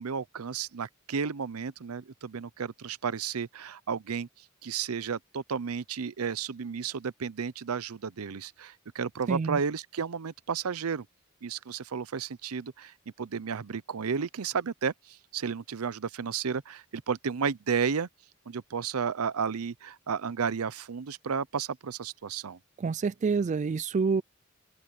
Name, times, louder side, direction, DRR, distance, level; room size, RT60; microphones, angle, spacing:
voice 1, 0.0-4.3 4.6-11.1 11.4-18.1 18.5-22.6, right 6 dB, 85° right, 0.6 m, -32 dB
voice 2, 9.3-9.6 22.8-24.2, right 5 dB, 35° right, 0.3 m, -27 dB
open air
head